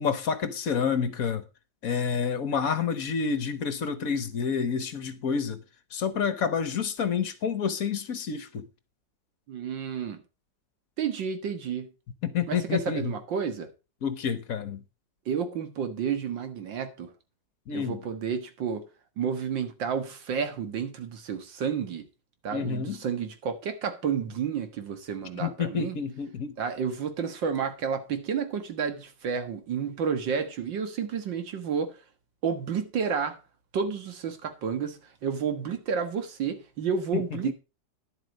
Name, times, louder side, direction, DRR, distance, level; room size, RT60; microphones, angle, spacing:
voice 1, 0.0-1.4 1.8-5.6 5.9-8.6 12.2-13.1 14.0-14.8 17.7-18.0 22.5-23.0 25.4-26.5 37.1-37.5, left 6 dB, 55° left, 1.3 m, -29 dB
voice 2, 9.5-10.2 11.0-11.9 12.5-13.7 15.3-17.1 17.7-18.8 19.2-22.1 22.4-26.0 26.6-32.0 32.4-33.4 33.7-37.5, right 6 dB, 90° right, 2.2 m, -31 dB
10.5 x 7.9 x 5.1 m
omnidirectional pair, 2.0 m